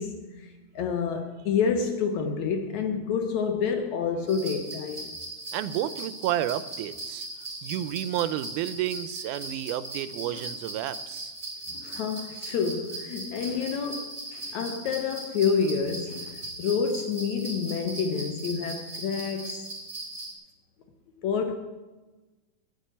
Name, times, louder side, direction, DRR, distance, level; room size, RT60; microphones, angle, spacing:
voice 1, 0.0-5.1 10.3-10.4 11.7-19.7 21.2-21.6, left 6 dB, 70° left, 2.1 m, -28 dB
sound 1, 4.3-20.3, right 2 dB, 20° right, 2.4 m, -39 dB
voice 2, 5.5-7.3 7.6-11.3, right 12 dB, 90° right, 2.1 m, -31 dB
10.5 x 8.5 x 9.0 m
omnidirectional pair, 3.5 m